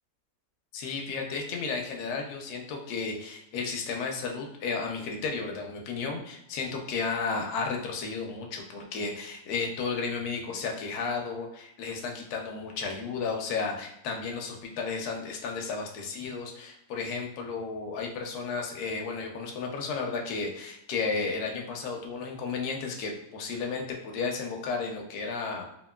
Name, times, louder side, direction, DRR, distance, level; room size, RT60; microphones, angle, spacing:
voice 1, 0.7-25.7, left 4 dB, 80° left, 2 dB, 1.1 m, -33 dB
2.8 x 2.7 x 2.2 m, 0.80 s
omnidirectional pair, 1.6 m